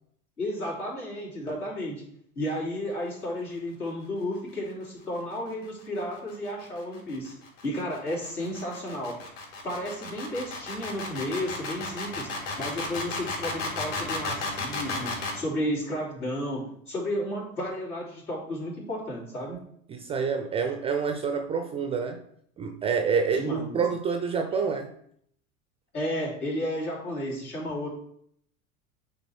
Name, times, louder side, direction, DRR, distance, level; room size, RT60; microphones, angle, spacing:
voice 1, 0.4-2.0 2.3-7.3 7.6-9.2 9.6-12.3 12.6-19.6 23.3-23.8 25.9-27.9, equal, 85° left, -6 dB, 3.3 m, -32 dB
sound 1, 6.1-15.4, left 3 dB, 60° left, 2.9 m, -34 dB
voice 2, 19.9-22.2 22.6-24.9, right 5 dB, 15° right, 6 dB, 0.3 m, -27 dB
8.7 x 4.1 x 4.3 m, 0.68 s
figure-of-eight pair, 80°, 44 cm